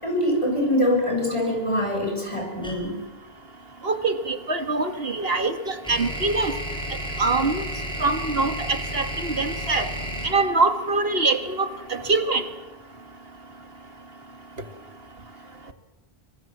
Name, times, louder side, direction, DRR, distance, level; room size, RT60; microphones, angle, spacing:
voice 1, 0.0-3.0 10.2-10.3, left 1 dB, 30° left, 1 dB, 6.2 m, -24 dB
sound 1, 2.6-2.8 4.9-11.9, equal, 5° left, 6.5 m, -32 dB
voice 2, 3.8-6.5 7.2-7.7 8.0-9.9 10.2-12.4, right 3 dB, 70° right, 10 dB, 2.2 m, -24 dB
26.5 x 24.0 x 7.6 m, 1.1 s
omnidirectional pair, 1.0 m